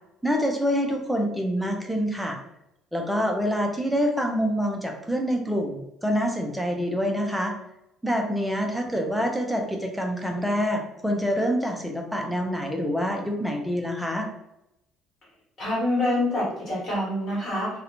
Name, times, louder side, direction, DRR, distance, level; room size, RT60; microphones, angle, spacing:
voice 1, 0.2-2.4 2.9-7.5 8.0-14.3, equal, ahead, 1 dB, 0.3 m, -26 dB
voice 2, 15.6-17.7, left 1 dB, 30° left, -6 dB, 1.2 m, -26 dB
2.4 x 2.1 x 2.9 m, 0.86 s
cardioid pair, 180°, 0 cm